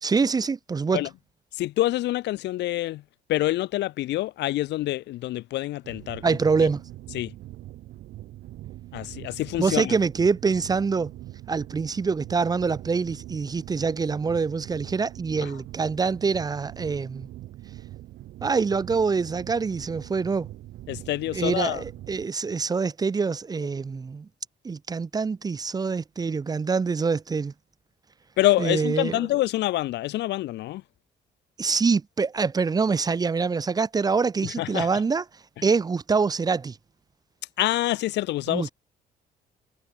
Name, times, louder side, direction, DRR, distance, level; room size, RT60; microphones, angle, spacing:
voice 1, 0.0-1.0 6.2-6.8 9.6-11.1 11.5-17.3 18.4-20.5 21.3-24.3 24.6-27.5 28.6-29.2 31.6-35.2 35.6-36.8 38.5-38.7, right 5 dB, 20° right, 1.1 m, -25 dB
voice 2, 1.6-3.0 3.3-6.4 7.1-7.3 8.9-9.9 15.4-15.5 20.9-21.8 28.4-30.8 34.6-35.0 37.6-38.7, left 16 dB, 90° left, 2.0 m, -26 dB
sound 1, 5.8-22.3, right 15 dB, 80° right, 2.2 m, -42 dB
cardioid pair, 155°, 17 cm